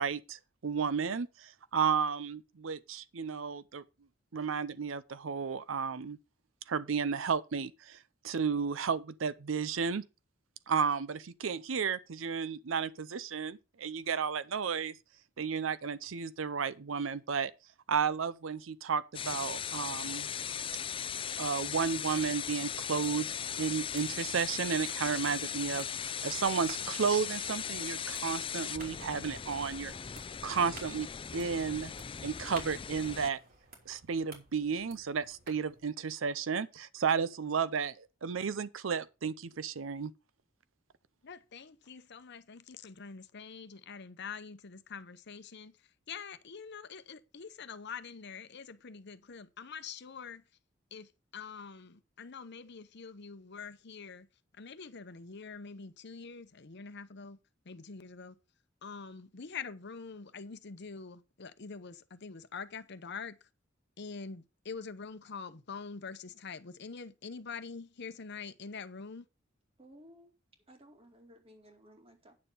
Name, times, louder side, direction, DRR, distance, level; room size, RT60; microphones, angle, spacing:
voice 1, 0.0-3.8 4.3-6.2 6.7-10.0 10.7-15.0 15.4-17.5 17.9-20.3 21.4-29.9 30.4-31.1 31.3-31.9 32.2-33.4 33.9-40.1, right 6 dB, 75° right, 0.6 m, -33 dB
sound 1, 19.1-33.3, left 8 dB, 25° left, 0.4 m, -38 dB
sound 2, 22.1-35.9, right 3 dB, 50° right, 3.2 m, -56 dB
voice 2, 41.2-45.8 46.1-50.4 50.9-54.3 54.6-57.4 57.7-58.4 58.8-63.4 64.0-69.2, left 5 dB, 60° left, 0.8 m, -45 dB
voice 3, 69.8-70.3 70.7-72.4, equal, 30° right, 2.4 m, -57 dB
9.6 x 6.8 x 5.4 m
head